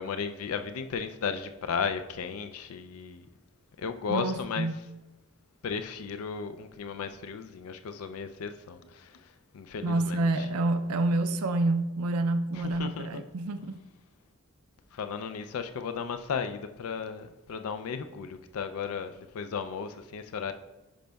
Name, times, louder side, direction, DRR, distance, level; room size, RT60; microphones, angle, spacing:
voice 1, 0.0-3.3 3.8-4.7 5.6-9.2 9.5-10.5 12.5-13.2 14.9-20.5, left 6 dB, 80° left, 0.4 m, -35 dB
voice 2, 4.1-4.7 9.8-13.8, right 2 dB, 85° right, 0.4 m, -28 dB
10.0 x 5.3 x 2.3 m
head